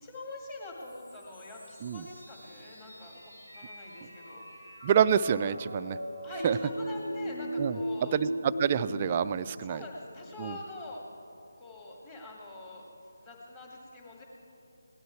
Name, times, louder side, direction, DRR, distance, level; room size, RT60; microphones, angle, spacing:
voice 1, 0.0-4.5 6.2-8.2 9.6-11.1 11.6-12.8 13.2-14.2, left 2 dB, 20° left, -2 dB, 2.0 m, -45 dB
sound 1, 0.8-8.9, equal, 85° left, 3.5 m, -39 dB
voice 2, 4.8-6.0 6.4-6.6 7.6-9.8 10.4-10.6, right 8 dB, 25° right, 14 dB, 0.3 m, -27 dB
17.5 x 12.0 x 4.6 m, 2.9 s
figure-of-eight pair, 155°, 0 cm